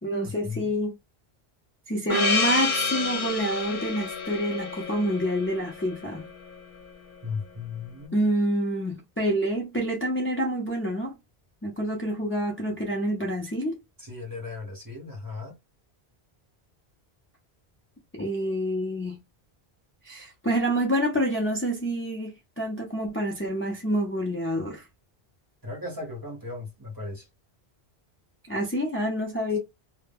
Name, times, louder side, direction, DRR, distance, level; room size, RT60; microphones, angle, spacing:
voice 1, 0.0-1.0 1.9-6.2 8.1-11.2 11.6-13.8 18.1-19.2 20.0-24.8 28.5-29.6, right 1 dB, 20° left, 0.4 m, -27 dB
Gong, 2.1-6.9, left 4 dB, 65° left, 1.0 m, -29 dB
voice 2, 7.2-8.3 14.0-15.5 25.6-27.3, left 4 dB, 20° right, 0.8 m, -36 dB
2.1 x 2.0 x 3.4 m
omnidirectional pair, 1.1 m